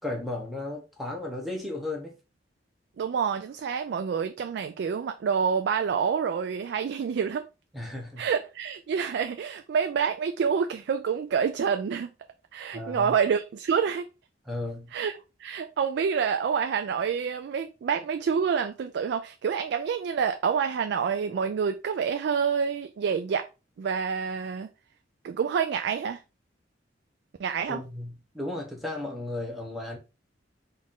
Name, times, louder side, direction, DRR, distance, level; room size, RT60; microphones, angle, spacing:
voice 1, 0.0-2.1 7.7-8.3 12.7-13.2 14.5-14.9 27.7-30.0, left 2 dB, ahead, 0.8 m, -35 dB
voice 2, 3.0-7.5 8.2-12.1 12.5-14.1 14.9-23.5 23.8-24.7 25.2-26.2 27.4-27.8, right 6 dB, 60° right, 0.3 m, -27 dB
4.1 x 2.5 x 3.6 m
head